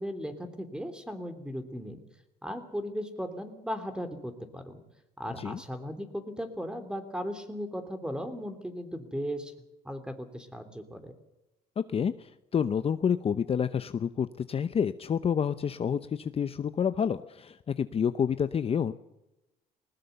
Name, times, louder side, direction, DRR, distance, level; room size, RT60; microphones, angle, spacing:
voice 1, 0.0-2.0 2.4-4.8 5.2-9.5 9.8-11.1, equal, 5° right, 9 dB, 3.2 m, -37 dB
voice 2, 11.8-18.9, left 7 dB, 35° left, 12 dB, 0.8 m, -29 dB
20.0 x 20.0 x 6.9 m, 0.96 s
cardioid pair, 110°, 17 cm